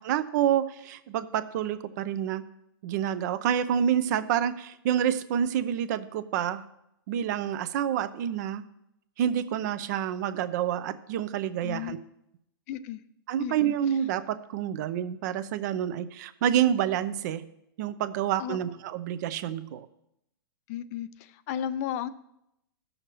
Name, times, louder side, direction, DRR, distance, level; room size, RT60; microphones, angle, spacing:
voice 1, 0.0-2.4 2.8-6.6 7.1-8.6 9.2-12.0 13.3-17.4 17.8-19.9, right 10 dB, 50° right, 12 dB, 0.7 m, -28 dB
voice 2, 11.6-12.0 12.7-13.0 13.4-13.7 18.4-18.6 20.7-22.1, left 10 dB, 40° left, 15 dB, 0.4 m, -34 dB
16.0 x 6.5 x 3.0 m, 0.81 s
hypercardioid pair, 145°, 12 cm